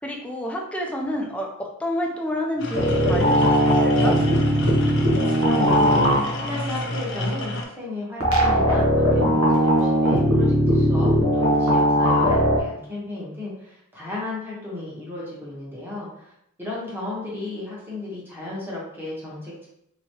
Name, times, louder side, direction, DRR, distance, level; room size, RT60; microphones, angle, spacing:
voice 1, 0.0-4.2, left 1 dB, 5° left, 0 dB, 0.5 m, -29 dB
sound 1, 2.6-7.6, left 1 dB, 60° left, 0.6 m, -29 dB
sound 2, 2.7-6.5 8.2-12.6, equal, 75° right, 1.0 m, -19 dB
voice 2, 5.1-16.3 16.6-19.7, left 2 dB, 10° right, -6 dB, 1.1 m, -34 dB
3.6 x 3.0 x 2.9 m, 0.75 s
head